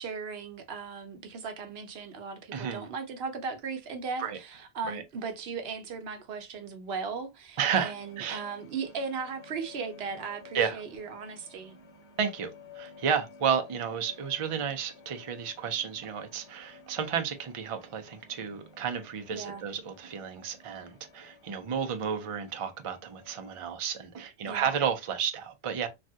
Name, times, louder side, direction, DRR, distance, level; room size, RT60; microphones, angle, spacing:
voice 1, 0.0-11.8 19.3-19.6 24.4-24.7, right 5 dB, 70° right, 0.9 m, -37 dB
voice 2, 2.5-2.9 4.2-4.4 4.9-5.0 7.6-8.4 10.5-10.8 12.2-25.9, right 7 dB, 45° right, 0.4 m, -32 dB
sound 1, 7.6-23.8, left 4 dB, 80° left, 1.1 m, -53 dB
3.2 x 2.3 x 2.6 m
omnidirectional pair, 1.1 m